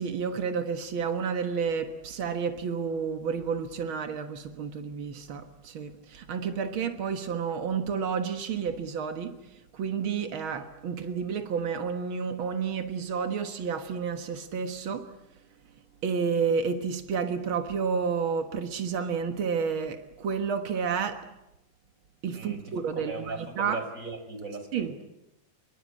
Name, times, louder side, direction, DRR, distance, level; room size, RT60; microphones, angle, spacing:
voice 1, 0.0-15.1 16.0-21.3 22.2-23.8 24.7-25.0, right 6 dB, 80° right, 1.1 m, -30 dB
voice 2, 22.9-25.0, right 3 dB, 20° right, 4.5 m, -38 dB
27.0 x 23.0 x 8.5 m
omnidirectional pair, 4.7 m